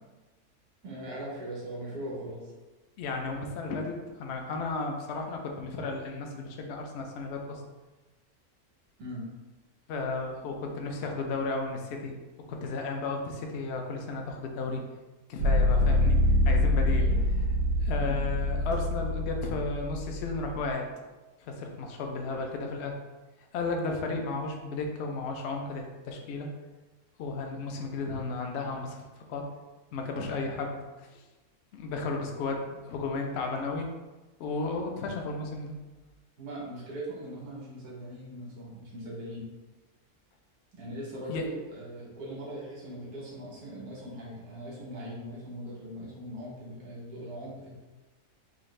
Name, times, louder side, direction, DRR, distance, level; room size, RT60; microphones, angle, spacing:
voice 1, 0.8-2.5 9.0-9.2 16.9-17.2 18.0-18.2 36.4-39.5 40.7-47.7, right 1 dB, 85° right, -4 dB, 1.4 m, -40 dB
voice 2, 3.0-7.6 9.9-12.1 12.5-14.8 15.3-16.2 16.4-17.0 17.8-20.8 21.4-22.9 23.5-26.5 27.2-29.0 29.3-29.4 29.9-30.8 31.8-33.9 34.4-35.8 41.3-41.4, left 3 dB, 65° left, 2 dB, 0.6 m, -33 dB
sound 1, 15.4-20.7, left 1 dB, 70° right, 0.8 m, -25 dB
3.9 x 2.5 x 3.1 m, 1.2 s
omnidirectional pair, 1.6 m